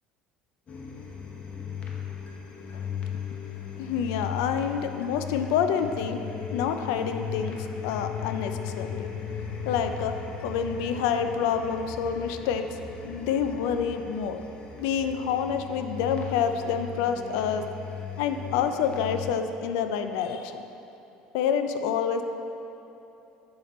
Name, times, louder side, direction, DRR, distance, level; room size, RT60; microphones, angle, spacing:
sound 1, 0.7-19.3, left 7 dB, 40° left, 0.9 m, -37 dB
voice 1, 3.8-6.2 6.5-9.1 9.7-10.1 10.4-12.6 13.0-14.4 14.8-17.6 18.2-20.6 21.3-22.2, left 7 dB, 85° left, 8 dB, 0.4 m, -28 dB
7.5 x 5.8 x 4.1 m, 3.0 s
supercardioid pair, 105°, 3 cm